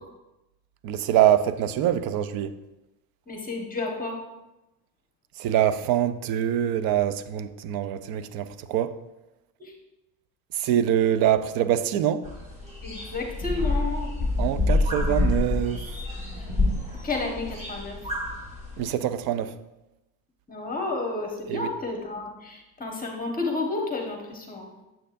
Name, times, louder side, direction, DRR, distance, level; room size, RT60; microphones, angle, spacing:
voice 1, 0.8-2.5 5.4-8.9 10.6-12.2 14.4-15.8 18.8-19.5 21.5-21.7, right 11 dB, 50° right, 0.5 m, -24 dB
voice 2, 3.3-4.2 9.6-9.7 12.8-14.3 17.0-18.0 20.5-24.7, left 3 dB, 15° left, 1.3 m, -31 dB
sound 1, 12.2-18.9, left 2 dB, 15° right, 1.8 m, -27 dB
7.7 x 6.6 x 2.6 m
supercardioid pair, 100°, 48 cm